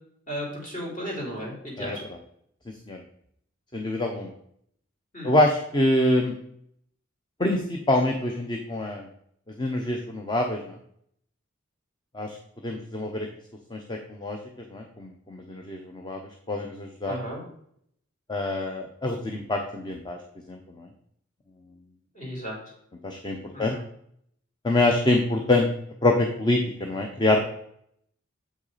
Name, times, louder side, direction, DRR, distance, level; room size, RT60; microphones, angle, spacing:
voice 1, 0.3-2.0 5.1-5.3 17.0-17.4 22.2-22.6 23.5-23.8, equal, 40° left, -3 dB, 3.4 m, -34 dB
voice 2, 3.7-4.3 5.2-6.3 7.4-9.1 9.6-10.7 12.1-12.4 12.6-13.3 13.7-14.4 14.7-16.2 16.5-17.2 18.3-20.2 20.5-20.9 23.0-23.8 24.6-25.7 26.0-27.4, left 1 dB, 20° left, 3 dB, 0.7 m, -25 dB
7.5 x 6.0 x 4.1 m, 0.69 s
head